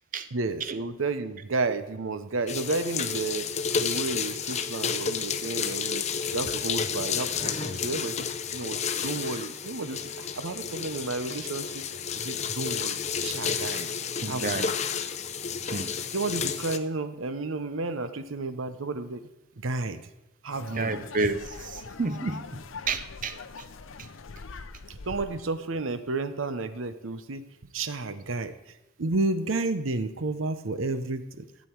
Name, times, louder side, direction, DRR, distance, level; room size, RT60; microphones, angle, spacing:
voice 1, 0.3-3.5 3.8-6.1 6.3-8.3 8.5-11.8 12.1-13.9 14.3-14.7 16.1-19.2 19.6-20.0 20.4-21.0 24.9-28.6 29.0-31.5, right 3 dB, 80° right, 11 dB, 0.8 m, -32 dB
sound 1, 2.5-16.8, left 6 dB, 35° left, 0.6 m, -31 dB
voice 2, 14.2-14.7 15.7-16.0 20.7-23.7 24.0-24.1, right 3 dB, 40° right, 11 dB, 0.6 m, -31 dB
sound 2, 20.5-25.5, left 4 dB, 75° left, 0.6 m, -43 dB
15.0 x 8.5 x 4.6 m, 0.94 s
head